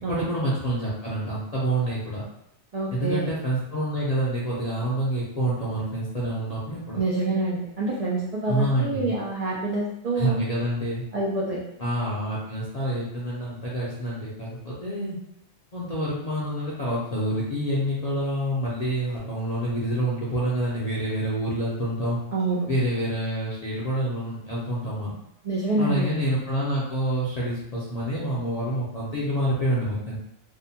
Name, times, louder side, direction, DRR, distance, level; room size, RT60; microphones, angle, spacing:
voice 1, 0.1-2.2 2.9-7.0 8.5-9.1 10.1-11.0 11.8-15.2 15.7-22.2 22.7-25.1 25.8-30.2, right 1 dB, 50° left, -7 dB, 0.5 m, -27 dB
voice 2, 2.7-3.3 6.9-10.4 11.1-11.6 22.3-22.7 25.4-26.0, right 2 dB, 80° right, -5 dB, 0.3 m, -26 dB
2.7 x 2.1 x 2.7 m, 0.78 s
omnidirectional pair, 1.3 m